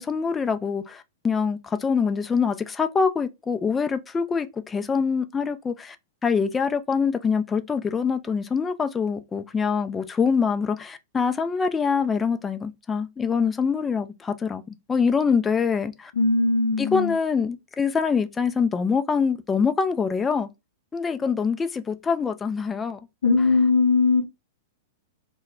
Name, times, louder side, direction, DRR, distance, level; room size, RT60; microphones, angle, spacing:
voice 1, 0.0-6.0 6.2-16.1 16.8-20.5 20.9-23.0 23.4-23.5, left 5 dB, 15° left, 0.3 m, -24 dB
voice 2, 16.2-17.1 23.2-24.2, left 3 dB, 70° left, 0.5 m, -20 dB
2.1 x 2.0 x 3.6 m
figure-of-eight pair, 100°, 0 cm